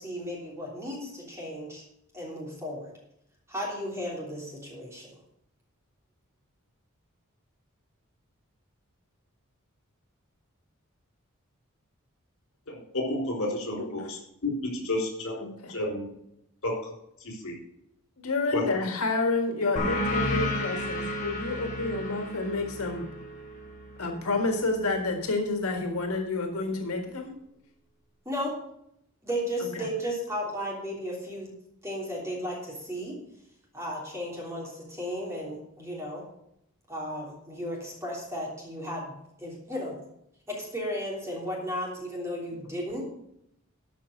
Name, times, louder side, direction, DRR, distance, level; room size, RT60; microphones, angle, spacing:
voice 1, 0.0-1.8 2.1-2.9 3.5-5.2 28.2-28.5 29.2-31.5 31.8-33.2 33.7-36.2 36.9-40.0 40.5-43.0, equal, 15° right, -3 dB, 3.3 m, -34 dB
voice 2, 12.7-15.3 15.7-16.1 16.6-16.7 17.2-17.5 18.5-18.7, left 1 dB, 70° left, 0 dB, 4.3 m, -31 dB
voice 3, 13.8-14.1 15.4-15.7 18.2-23.0 24.0-27.3 29.7-29.9, left 3 dB, 90° left, 4 dB, 1.8 m, -29 dB
sound 1, 19.8-24.9, left 1 dB, 35° left, 2.8 m, -32 dB
13.0 x 5.7 x 6.5 m, 0.77 s
head